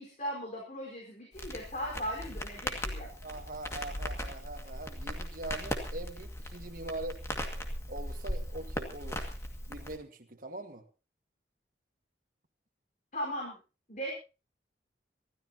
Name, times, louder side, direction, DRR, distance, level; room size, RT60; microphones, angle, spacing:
voice 1, 0.0-3.1 13.1-13.6 13.9-14.1, equal, 45° left, -1 dB, 4.7 m, -38 dB
Crackle, 1.3-10.0, equal, 15° left, 2.1 m, -38 dB
voice 2, 3.2-7.2 7.5-9.3 9.7-10.8, right 2 dB, 50° right, 5 dB, 1.7 m, -42 dB
26.5 x 13.0 x 2.9 m, 0.32 s
head